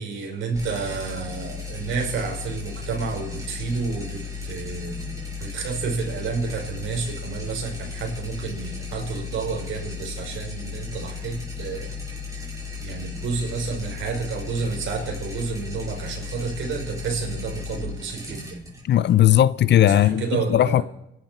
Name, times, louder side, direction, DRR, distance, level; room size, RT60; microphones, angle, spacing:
voice 1, 0.0-11.9 12.8-18.6 19.9-20.8, right 4 dB, 80° right, 5.0 m, -30 dB
sound 1, 0.5-19.8, left 5 dB, 15° right, 6.4 m, -35 dB
voice 2, 18.8-20.8, left 12 dB, 60° left, 0.6 m, -17 dB
27.0 x 11.5 x 4.5 m
cardioid pair, 90°, 20 cm